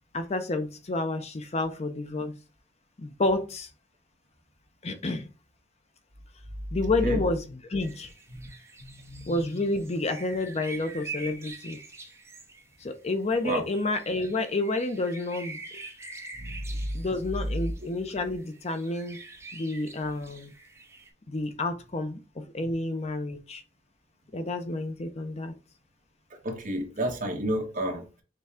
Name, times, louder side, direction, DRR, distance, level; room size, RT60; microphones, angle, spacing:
voice 1, 0.1-2.3 3.0-3.7 4.8-5.3 6.7-8.1 9.3-11.8 12.8-15.6 16.9-19.2 19.5-20.5 21.3-23.6 24.3-25.5, left 2 dB, 35° left, 0.6 m, -30 dB
sound 1, 7.8-21.1, right 3 dB, 15° right, 0.8 m, -45 dB
voice 2, 8.8-9.4 13.4-13.6 16.4-16.8 26.4-28.2, right 1 dB, 45° right, 1.3 m, -31 dB
6.6 x 2.3 x 3.6 m
head